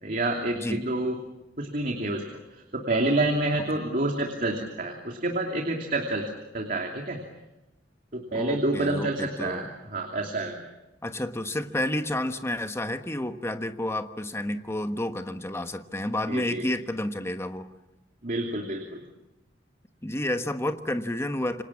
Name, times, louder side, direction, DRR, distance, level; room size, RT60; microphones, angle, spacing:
voice 1, 0.0-1.2 1.6-2.2 2.7-7.2 8.1-10.6 16.3-16.7 18.2-19.0, right 2 dB, 45° right, 2 dB, 2.8 m, -28 dB
voice 2, 8.3-9.7 11.0-17.7 20.0-21.6, left 1 dB, 15° left, 8 dB, 1.3 m, -30 dB
28.0 x 25.5 x 7.4 m, 0.98 s
head